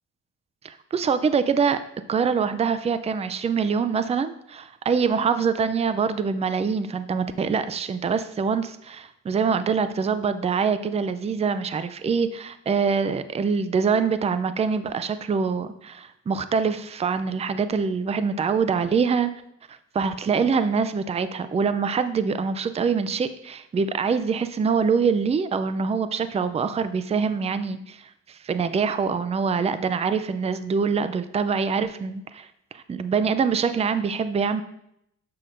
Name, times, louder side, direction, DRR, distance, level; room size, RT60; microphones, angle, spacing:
voice 1, 0.6-1.8 2.1-19.3 19.7-32.5 32.7-34.6, right 5 dB, 20° right, 12 dB, 0.4 m, -24 dB
7.5 x 6.3 x 2.6 m, 0.77 s
cardioid pair, 90°, 30 cm